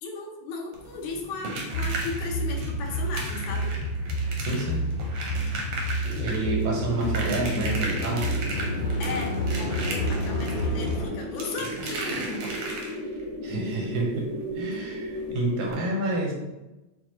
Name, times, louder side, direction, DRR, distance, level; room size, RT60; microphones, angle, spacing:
voice 1, 0.0-3.8 9.0-12.5, left 3 dB, 85° left, -1 dB, 1.2 m, -36 dB
sound 1, 0.7-13.2 14.7-14.8 15.1-15.2 15.6-15.7, right 2 dB, 70° right, 1.4 m, -36 dB
sound 2, 1.7-11.1, equal, 55° left, 2.1 m, -29 dB
voice 2, 4.4-4.9 5.8-5.9 6.2-8.3 13.4-14.3 14.5-16.3, right 2 dB, 85° right, -1 dB, 2.3 m, -29 dB
sound 3, 6.0-15.7, equal, 70° left, 2.2 m, -36 dB
6.1 x 2.3 x 2.9 m, 1.0 s
omnidirectional pair, 3.3 m